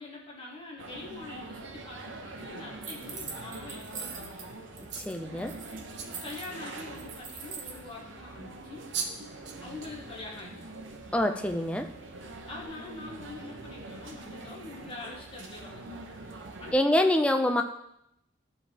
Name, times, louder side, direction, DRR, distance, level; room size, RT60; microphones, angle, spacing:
voice 1, 0.0-4.6 6.2-8.8 9.6-10.6 12.4-16.2 16.6-17.3, left 2 dB, 30° left, -3 dB, 1.6 m, -44 dB
sound 1, 0.8-16.7, right 2 dB, 85° right, 0.9 m, -44 dB
sound 2, 2.8-4.5 4.8-5.1 5.4-7.8, right 5 dB, 40° right, 1.0 m, -42 dB
sound 3, 4.9-5.2 5.9-6.4 7.3-7.4 8.6-8.7 8.9-9.2 9.5-9.9 10.4-10.6, right 6 dB, 60° right, 0.8 m, -37 dB
voice 2, 5.0-5.5 11.1-11.9 16.7-17.6, left 1 dB, 5° left, 6 dB, 0.4 m, -25 dB
12.0 x 4.5 x 3.5 m, 0.80 s
head